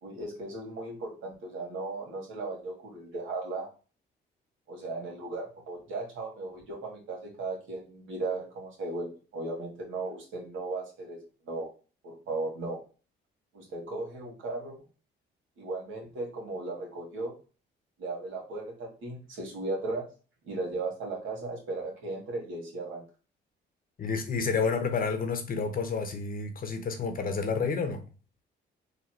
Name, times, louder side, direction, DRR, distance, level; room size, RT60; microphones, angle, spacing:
voice 1, 0.0-3.7 4.7-11.2 11.5-11.7 12.0-12.8 13.5-14.8 15.6-17.3 18.0-20.1 20.4-23.0, right 2 dB, 80° right, 2.0 m, -36 dB
voice 2, 24.0-28.0, left 5 dB, 45° left, 1.0 m, -30 dB
4.0 x 2.6 x 4.4 m
cardioid pair, 90°, 20 cm